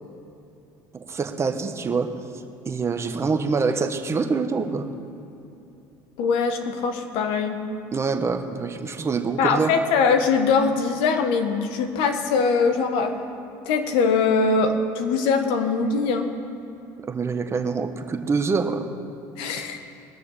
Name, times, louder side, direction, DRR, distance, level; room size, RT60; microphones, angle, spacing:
voice 1, 0.9-2.1 2.6-4.9 7.9-9.7 17.1-18.9, right 4 dB, 30° right, 7 dB, 1.2 m, -25 dB
voice 2, 6.2-7.6 9.4-13.2 13.6-16.3 19.4-19.8, left 4 dB, 75° left, 6 dB, 1.4 m, -22 dB
20.0 x 6.7 x 6.6 m, 3.0 s
supercardioid pair, 90°, 9 cm